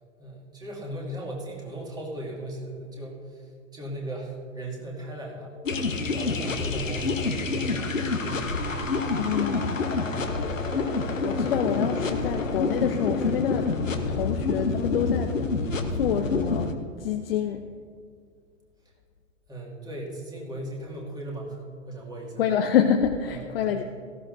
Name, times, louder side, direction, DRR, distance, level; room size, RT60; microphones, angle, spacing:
voice 1, 0.2-5.5 5.8-8.8 19.5-22.4 23.3-23.8, right 1 dB, 10° right, -3 dB, 2.5 m, -38 dB
sound 1, 5.6-16.7, left 3 dB, 80° left, 1.1 m, -27 dB
voice 2, 9.1-9.8 10.8-13.7 14.1-15.3 16.0-17.7 22.4-23.8, left 8 dB, 50° left, 5 dB, 0.7 m, -27 dB
18.0 x 14.5 x 2.7 m, 2.1 s
figure-of-eight pair, 105°, 38 cm